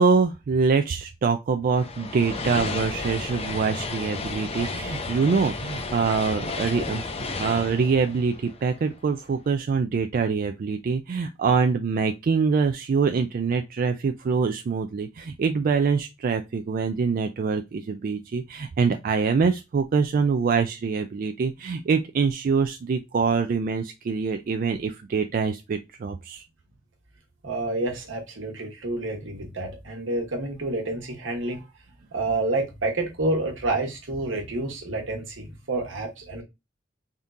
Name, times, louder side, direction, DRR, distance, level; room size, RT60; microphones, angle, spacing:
voice 1, 0.0-26.4, right 5 dB, 50° right, 0.3 m, -24 dB
sound 1, 1.8-9.2, left 3 dB, 35° left, 0.6 m, -33 dB
voice 2, 27.4-31.6 32.1-36.4, right 2 dB, 75° right, 1.3 m, -29 dB
3.6 x 2.8 x 3.5 m
head